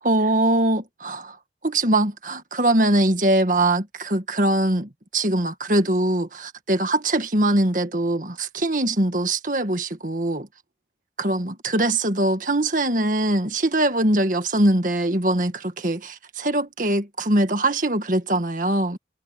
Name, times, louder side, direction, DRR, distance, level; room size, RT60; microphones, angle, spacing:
voice 1, 0.0-1.4 1.6-10.5 11.2-19.0, right 1 dB, 45° right, 1.9 m, -22 dB
head